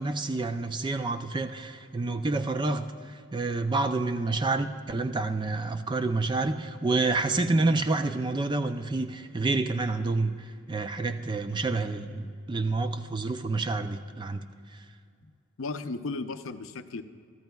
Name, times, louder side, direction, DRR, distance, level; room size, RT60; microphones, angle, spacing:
voice 1, 0.0-14.4, right 3 dB, 20° right, 0.4 m, -28 dB
voice 2, 15.6-17.0, left 3 dB, 65° left, 0.6 m, -35 dB
23.0 x 14.0 x 2.3 m
head